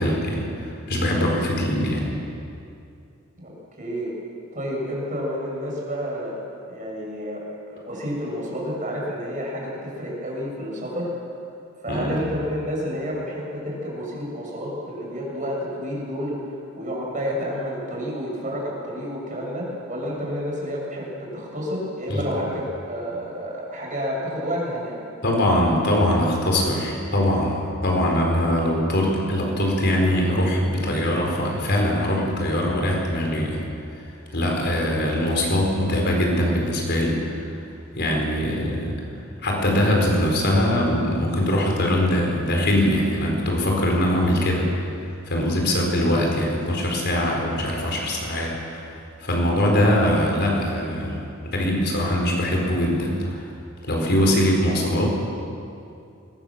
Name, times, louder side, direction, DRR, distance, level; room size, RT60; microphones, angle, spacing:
voice 1, 0.0-2.1 11.9-12.2 22.1-22.2 25.2-33.6 34.3-37.4 37.9-38.9 39.4-44.7 45.3-53.5 53.8-55.1, left 1 dB, 55° left, 0 dB, 4.8 m, -22 dB
voice 2, 3.4-4.1 4.5-6.4 6.7-11.1 11.8-16.4 16.8-25.0, equal, 40° right, -3 dB, 6.9 m, -30 dB
21.5 x 20.0 x 7.4 m, 2.5 s
head